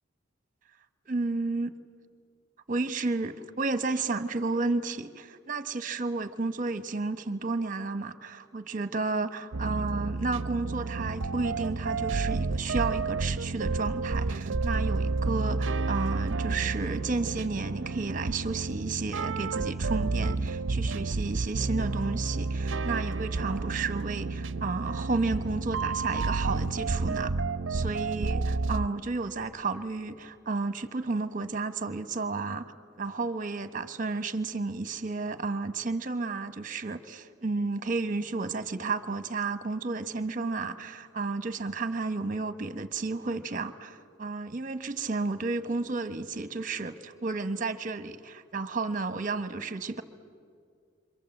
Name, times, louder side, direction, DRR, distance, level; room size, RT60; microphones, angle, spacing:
voice 1, 1.1-1.7 2.7-27.3 27.7-32.6 33.0-50.0, right 3 dB, 45° right, 10 dB, 1.1 m, -32 dB
sound 1, 9.5-28.9, right 3 dB, 80° right, 0.6 m, -30 dB
28.5 x 25.5 x 7.9 m, 2.2 s
head